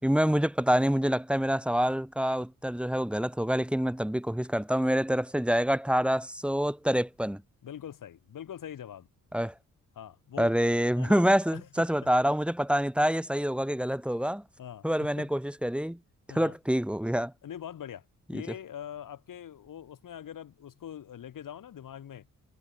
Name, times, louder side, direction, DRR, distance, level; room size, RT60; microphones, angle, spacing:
voice 1, 0.0-7.4 9.3-9.5 10.4-14.4 14.8-16.0 16.3-17.3 18.3-18.4, equal, 5° right, 5.7 m, -26 dB
voice 2, 7.6-9.1 9.9-10.6 10.9-11.9 14.6-15.3 16.3-16.6 17.4-18.0 18.3-22.3, left 9 dB, 75° left, 7.8 m, -43 dB
wide cardioid pair, 135°, 32 cm